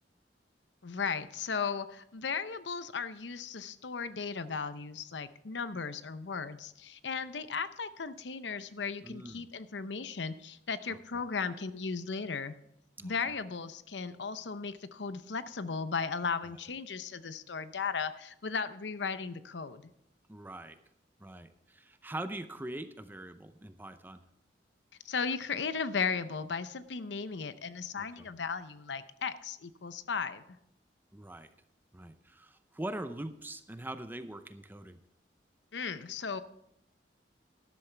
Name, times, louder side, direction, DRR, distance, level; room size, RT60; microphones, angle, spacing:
voice 1, 0.8-12.5 13.0-19.9 25.0-30.4 35.7-36.4, left 5 dB, 90° left, 12 dB, 0.7 m, -36 dB
voice 2, 9.0-9.4 10.9-11.0 13.0-13.1 20.3-20.8 21.2-24.2 28.0-28.3 31.1-31.5 31.9-35.0, right 1 dB, 10° right, 10 dB, 0.6 m, -42 dB
13.0 x 12.0 x 3.4 m, 0.82 s
head